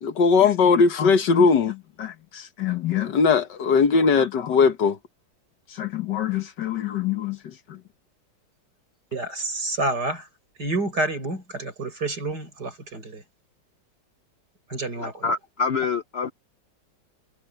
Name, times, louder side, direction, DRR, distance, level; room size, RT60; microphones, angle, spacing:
voice 1, 0.0-5.0 5.8-7.4, left 5 dB, 70° left, 1.9 m, -21 dB
voice 2, 9.1-10.3 10.6-13.3 14.7-15.3, right 2 dB, 60° right, 7.0 m, -29 dB
voice 3, 15.0-16.3, left 5 dB, 85° left, 0.5 m, -26 dB
omnidirectional pair, 2.0 m